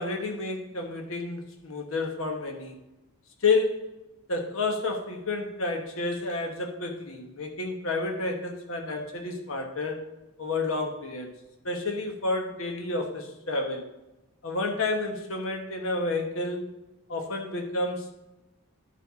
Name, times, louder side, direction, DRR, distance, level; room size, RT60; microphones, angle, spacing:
voice 1, 0.0-2.7 3.4-3.8 4.3-10.1 10.4-11.3 11.6-13.9 14.4-16.7 17.1-18.1, left 3 dB, 75° left, 3 dB, 1.1 m, -30 dB
12.0 x 4.6 x 4.1 m, 0.99 s
head